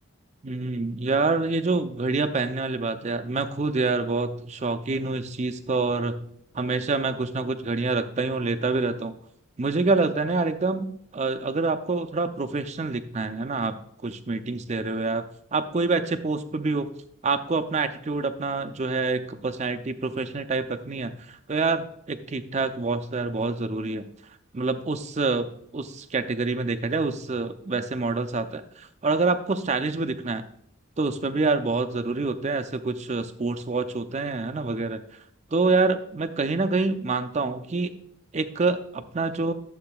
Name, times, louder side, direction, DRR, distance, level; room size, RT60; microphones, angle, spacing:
voice 1, 0.4-6.3 6.5-9.2 9.6-13.8 14.0-16.9 17.2-24.0 24.5-30.4 31.0-35.0 35.5-37.9 38.3-39.5, right 3 dB, 30° right, 8 dB, 0.5 m, -26 dB
11.5 x 7.6 x 2.3 m, 0.69 s
head